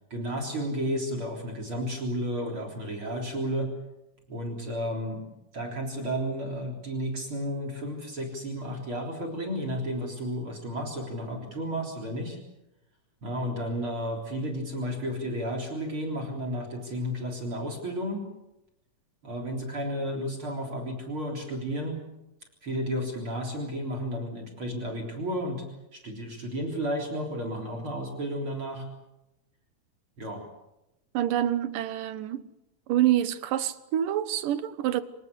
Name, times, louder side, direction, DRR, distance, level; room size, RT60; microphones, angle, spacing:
voice 1, 0.1-3.7 4.3-5.2 5.5-12.4 13.2-18.2 19.2-22.0 22.6-25.6 25.9-28.9 30.2-30.4, equal, 40° right, 4.3 m, -32 dB
voice 2, 31.1-32.5 32.9-35.0, right 12 dB, 85° right, 2.7 m, -26 dB
26.5 x 18.0 x 8.2 m
omnidirectional pair, 3.7 m